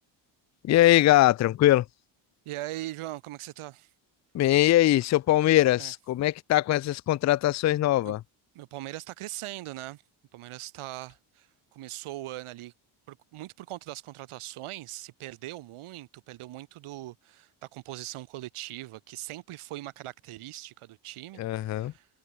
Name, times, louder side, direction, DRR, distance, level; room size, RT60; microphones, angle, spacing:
voice 1, 0.6-1.8 4.3-8.2 21.4-21.9, left 14 dB, 35° left, 0.4 m, -22 dB
voice 2, 2.5-3.9 5.8-5.9 8.0-8.2 8.5-10.0 10.3-12.7 13.1-22.1, right 16 dB, 85° right, 4.4 m, -40 dB
cardioid pair, 150°, 49 cm